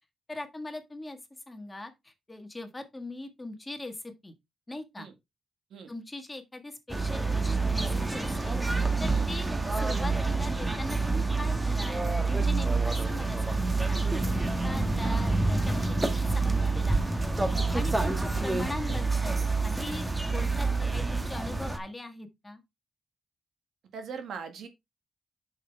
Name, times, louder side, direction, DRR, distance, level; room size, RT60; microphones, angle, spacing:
voice 1, 0.3-1.2 1.5-4.3 4.7-5.1 5.9-14.2 14.6-22.6, left 2 dB, 15° left, 1.6 m, -41 dB
sound 1, 6.9-21.8, right 3 dB, 15° right, 1.2 m, -27 dB
voice 2, 23.9-24.7, right 6 dB, 85° right, 1.8 m, -41 dB
8.0 x 6.3 x 3.5 m
cardioid pair, 115°, 0 cm